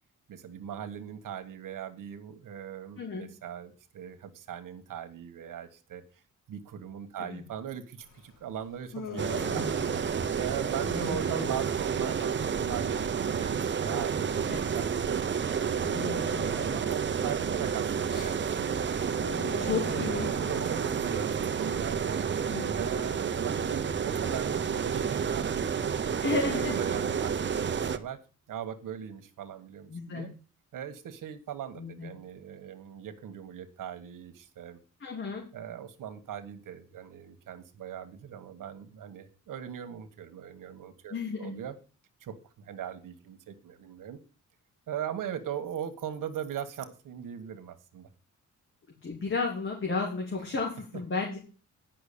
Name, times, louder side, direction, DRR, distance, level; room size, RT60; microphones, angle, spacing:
voice 1, 0.3-6.0 6.5-9.7 10.4-16.1 16.4-18.7 19.5-22.2 22.7-26.2 26.5-28.2 28.5-30.3 30.7-34.8 35.5-41.7 42.2-44.2 44.9-48.1, right 9 dB, 90° right, 8 dB, 1.5 m, -40 dB
Human voice, 8.0-23.2, left 4 dB, 80° left, 2.7 m, -44 dB
sound 1, 9.2-28.0, right 7 dB, 35° right, 0.8 m, -30 dB
voice 2, 19.4-20.3 22.5-22.7 26.2-26.8 29.9-30.3 31.8-32.1 35.0-35.4 41.1-41.6 49.0-51.4, left 4 dB, 40° left, -1 dB, 3.2 m, -33 dB
10.5 x 6.1 x 8.4 m, 0.36 s
wide cardioid pair, 135°, 31 cm